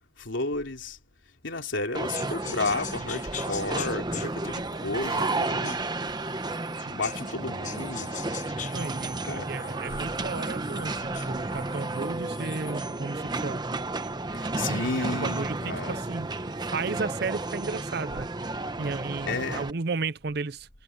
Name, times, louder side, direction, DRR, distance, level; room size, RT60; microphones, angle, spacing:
voice 1, 0.2-1.0 1.4-5.9 6.9-8.1 9.2-9.5 9.9-10.0 14.3-16.0 19.2-19.7, left 3 dB, 90° left, 3.0 m, -32 dB
sound 1, 1.9-19.7, right 2 dB, 25° right, 0.9 m, -32 dB
sound 2, 2.1-7.4 7.6-12.9, left 9 dB, 40° left, 1.1 m, -43 dB
voice 2, 8.7-13.6 15.0-16.3 16.6-18.3 18.8-20.7, right 4 dB, 60° right, 0.6 m, -34 dB
head